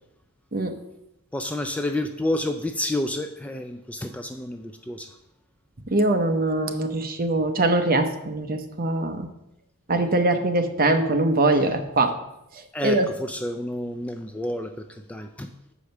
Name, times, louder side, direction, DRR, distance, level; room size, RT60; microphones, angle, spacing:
voice 1, 1.3-5.2 11.1-11.2 11.5-11.7 12.7-15.5, left 1 dB, 5° left, 6 dB, 0.3 m, -30 dB
voice 2, 5.9-9.3 9.9-12.1 12.8-13.0, right 2 dB, 40° right, 6 dB, 0.8 m, -22 dB
6.9 x 4.9 x 6.4 m, 0.85 s
head